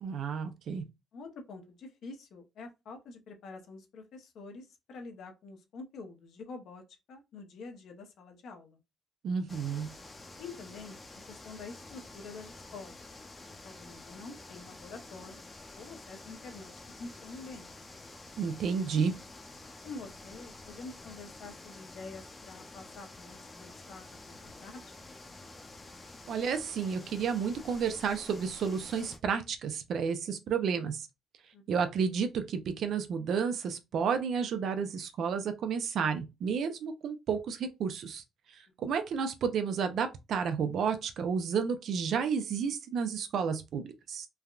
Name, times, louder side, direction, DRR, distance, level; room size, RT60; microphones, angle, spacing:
voice 1, 0.0-0.8 9.2-9.9 18.4-19.1 26.3-31.1 31.7-38.2 38.5-44.3, right 6 dB, 70° right, 0.5 m, -31 dB
voice 2, 1.1-6.8 7.1-8.8 10.4-11.0 11.3-13.0 13.6-15.4 15.8-17.7 19.8-25.1 31.5-31.6, left 3 dB, 75° left, 0.7 m, -47 dB
sound 1, 9.5-29.2, left 2 dB, 25° left, 0.6 m, -49 dB
3.3 x 2.2 x 2.4 m
cardioid pair, 90°, 0 cm